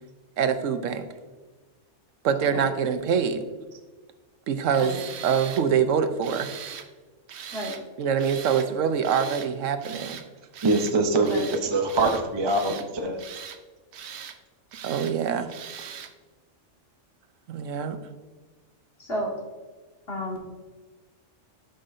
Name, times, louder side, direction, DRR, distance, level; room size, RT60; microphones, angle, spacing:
voice 1, 0.4-1.1 2.2-3.5 4.5-6.5 8.0-10.2 14.8-15.5 17.5-18.0, right 7 dB, 90° right, 9 dB, 1.0 m, -25 dB
Tools, 4.7-5.7 6.2-6.9 7.3-7.8 8.2-8.7 9.0-9.5 9.8-10.3 10.5-11.0 11.2-11.6 11.9-12.9 13.2-13.6 13.9-14.4 14.7-15.2 15.5-16.1, right 8 dB, 65° right, 0.9 m, -40 dB
voice 2, 10.6-13.2, right 2 dB, 30° right, 4 dB, 0.5 m, -23 dB
voice 3, 19.0-19.3 20.1-20.4, equal, 55° left, -1 dB, 1.9 m, -31 dB
12.5 x 5.5 x 2.6 m, 1.3 s
omnidirectional pair, 1.3 m